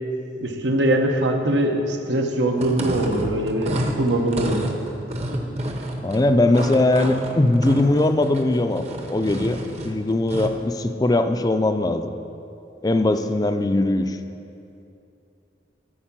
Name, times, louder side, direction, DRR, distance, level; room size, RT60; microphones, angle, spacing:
voice 1, 0.4-4.8, right 1 dB, 90° right, 3 dB, 1.1 m, -22 dB
sound 1, 2.5-10.6, right 1 dB, 35° right, 0.8 m, -30 dB
voice 2, 6.0-8.8 9.1-9.6 9.8-12.1 12.8-14.2, left 2 dB, 20° left, 8 dB, 0.4 m, -20 dB
13.5 x 4.7 x 7.4 m, 2.7 s
head